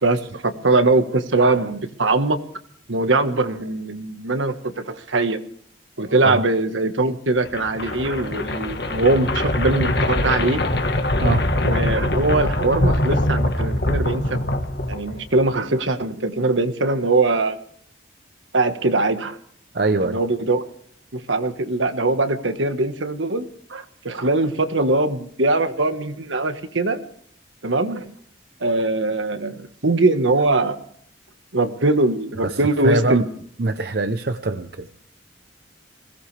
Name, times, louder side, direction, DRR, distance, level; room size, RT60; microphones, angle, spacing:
voice 1, 0.0-2.4 2.9-5.4 6.0-10.6 11.6-14.4 14.9-17.6 18.5-19.4 20.0-20.6 21.1-27.0 27.6-28.1 28.6-30.8 31.5-33.3, right 2 dB, 80° right, 8 dB, 1.4 m, -21 dB
sound 1, 7.4-15.4, left 1 dB, 55° left, 1.4 m, -23 dB
voice 2, 19.7-20.2 32.4-33.2 33.6-35.0, right 2 dB, 55° right, 9 dB, 0.7 m, -23 dB
21.0 x 16.5 x 3.4 m, 0.64 s
head